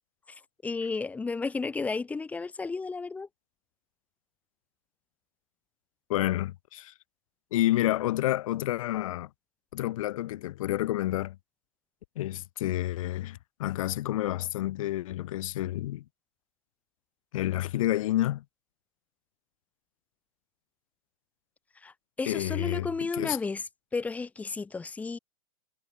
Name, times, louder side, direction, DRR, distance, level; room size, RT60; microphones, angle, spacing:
voice 1, 0.6-3.3 21.8-23.6 23.9-25.2, left 4 dB, 10° left, 0.5 m, -33 dB
voice 2, 6.1-6.9 7.5-9.3 9.7-11.4 12.2-16.0 17.3-18.4 22.3-22.9 23.1-23.4, left 15 dB, 65° left, 1.7 m, -29 dB
hypercardioid pair, 120°, 19 cm